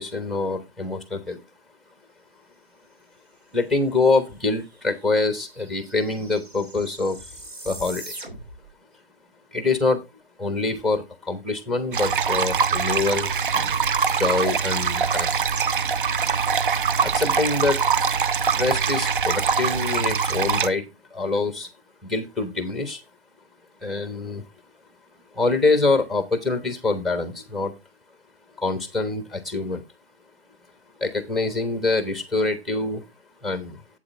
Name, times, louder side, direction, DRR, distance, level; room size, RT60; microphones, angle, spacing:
voice 1, 0.0-1.4 3.5-7.2 7.7-8.0 9.5-10.0 10.4-13.3 14.2-15.3 17.0-17.8 18.6-20.8 21.1-21.7 22.1-23.0 23.8-24.4 25.4-27.7 28.6-29.8 31.0-33.0 33.4-33.8, left 3 dB, ahead, 10 dB, 1.1 m, -25 dB
sound 1, 4.2-4.3 4.5-8.7, right 2 dB, 85° right, 3.2 m, -42 dB
sound 2, 11.9-20.7, right 6 dB, 55° right, 0.7 m, -23 dB
8.5 x 8.1 x 3.3 m, 0.22 s
figure-of-eight pair, 135°, 30 cm